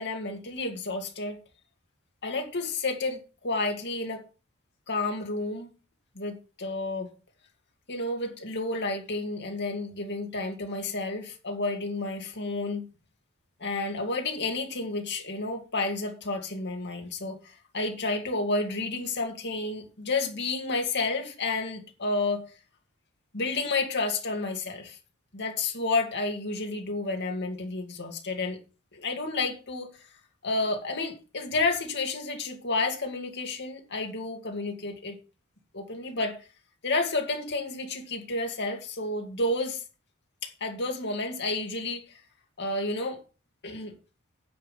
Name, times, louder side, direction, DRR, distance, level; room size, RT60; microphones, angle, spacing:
voice 1, 0.0-1.4 2.2-4.2 4.9-5.7 6.1-7.1 7.9-12.9 13.6-22.4 23.3-25.0 25.3-28.6 28.9-30.0 30.4-35.2 35.7-36.4 36.8-39.8 40.4-42.2 42.6-43.2 43.6-43.9, left 3 dB, 55° left, 2.5 m, -31 dB
10.5 x 7.3 x 5.7 m
head